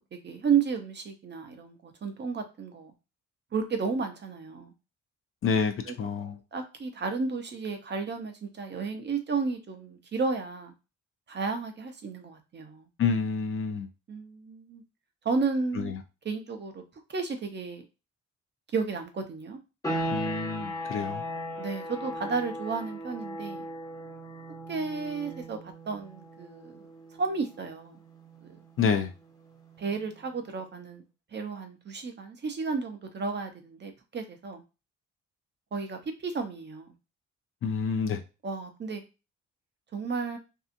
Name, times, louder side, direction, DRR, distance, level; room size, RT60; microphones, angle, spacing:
voice 1, 0.0-2.9 3.5-4.7 5.9-10.7 11.3-12.9 14.1-14.8 15.2-15.9 16.2-16.8 17.1-17.8 18.7-19.6 21.6-23.7 24.7-26.9 27.2-28.0 28.4-28.6 29.8-31.0 31.3-34.6 35.7-36.9 38.4-39.0 39.9-40.4, right 5 dB, 35° right, 0.6 m, -32 dB
voice 2, 5.4-6.4 13.0-13.9 15.8-15.9 20.1-21.2 28.8-29.1 37.6-38.2, left 6 dB, 45° left, 0.5 m, -28 dB
sound 1, 19.8-30.3, equal, 10° left, 0.8 m, -38 dB
2.7 x 2.4 x 2.5 m
cardioid pair, 90°, 30 cm